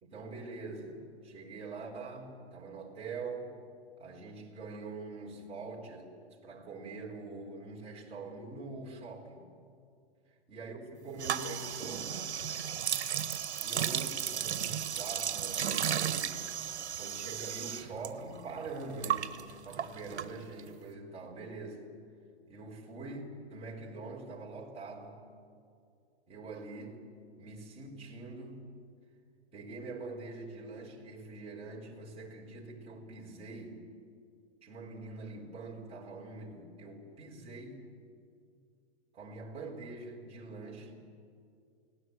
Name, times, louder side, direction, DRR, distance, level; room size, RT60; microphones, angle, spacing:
voice 1, 0.0-3.5 4.0-9.4 10.5-12.2 13.6-16.4 16.9-21.9 22.5-25.2 26.3-27.0 27.4-28.6 29.5-33.8 34.6-37.8 39.1-40.9, right 3 dB, 20° right, -2 dB, 4.0 m, -44 dB
sound 1, 11.2-18.1 18.3-20.7, right 9 dB, 80° right, 1.5 m, -34 dB
29.5 x 18.5 x 8.1 m, 2.3 s
hypercardioid pair, 150°, 33 cm